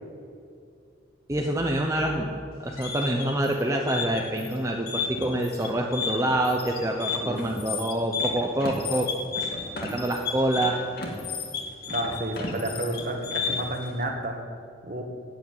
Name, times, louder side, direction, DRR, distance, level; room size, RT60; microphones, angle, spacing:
voice 1, 1.3-2.3 2.6-9.1 9.4-9.5 9.8-10.8, right 1 dB, 15° right, 1 dB, 0.8 m, -26 dB
sound 1, 2.5-13.8, left 5 dB, 55° left, 2.2 m, -32 dB
voice 2, 11.9-14.4 14.9-15.0, right 1 dB, 45° right, 3 dB, 1.7 m, -31 dB
13.5 x 8.6 x 9.1 m, 2.4 s
head